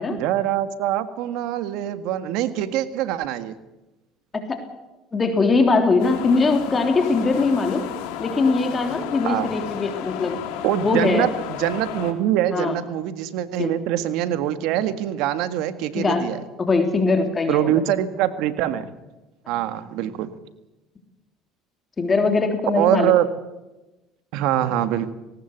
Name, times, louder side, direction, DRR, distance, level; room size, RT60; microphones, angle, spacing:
voice 1, 0.1-3.6 9.2-9.5 10.6-16.4 17.5-18.9 19.5-20.4 22.7-23.3 24.3-25.1, right 12 dB, 75° right, 11 dB, 1.8 m, -24 dB
voice 2, 5.1-7.9 8.2-10.4 10.8-11.3 12.5-12.8 13.6-13.7 16.0-16.3 16.6-17.7 22.0-23.1, left 3 dB, 30° left, 5 dB, 3.3 m, -21 dB
sound 1, 6.0-12.1, left 10 dB, 80° left, 3.1 m, -33 dB
19.5 x 18.5 x 8.2 m, 1.0 s
supercardioid pair, 90°, 0 cm